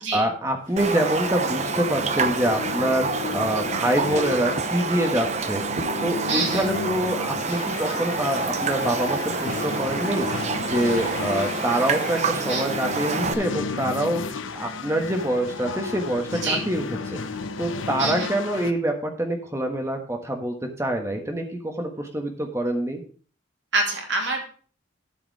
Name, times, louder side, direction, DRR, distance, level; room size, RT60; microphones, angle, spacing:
voice 1, 0.0-5.6 6.0-10.3 10.6-17.2 17.6-23.0, right 1 dB, 15° right, 3 dB, 1.5 m, -26 dB
sound 1, 0.7-18.7, left 4 dB, 75° left, 0.7 m, -33 dB
Raindrop, 0.8-13.3, right 4 dB, 35° right, 0.7 m, -28 dB
voice 2, 6.3-6.7 12.5-12.7 16.3-16.6 18.0-18.3 23.7-24.5, right 3 dB, 65° right, 0 dB, 2.9 m, -26 dB
12.5 x 5.0 x 4.8 m, 0.42 s
head